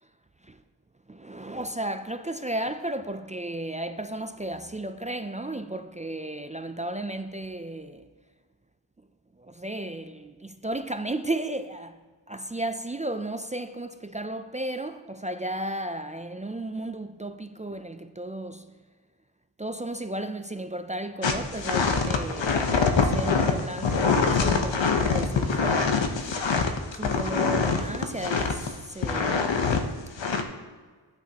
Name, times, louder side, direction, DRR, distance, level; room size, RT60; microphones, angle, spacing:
voice 1, 1.1-8.1 9.4-12.0 12.3-18.7 19.6-26.3 26.9-29.7, right 1 dB, 20° right, 0.3 m, -34 dB
sound 1, 21.2-28.7 29.0-29.8 30.2-30.4, left 5 dB, 75° left, 0.9 m, -24 dB
13.0 x 8.7 x 2.9 m
wide cardioid pair, 75°, 45 cm